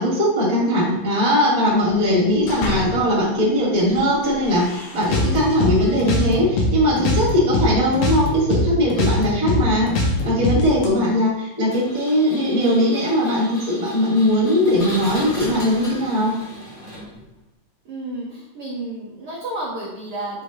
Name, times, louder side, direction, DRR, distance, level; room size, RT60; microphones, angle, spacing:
voice 1, 0.0-9.9 10.2-16.3, equal, 15° right, -6 dB, 1.5 m, -19 dB
sound 1, 2.1-3.2 3.7-6.5, left 3 dB, 80° left, 2.9 m, -33 dB
sound 2, 5.0-7.7 7.9-10.9, left 2 dB, 65° left, 1.7 m, -22 dB
Engine, 11.7-17.4, left 1 dB, 30° left, 1.9 m, -36 dB
voice 2, 17.8-20.4, right 1 dB, 70° right, -5 dB, 1.3 m, -31 dB
8.1 x 4.6 x 3.0 m, 0.88 s
omnidirectional pair, 4.1 m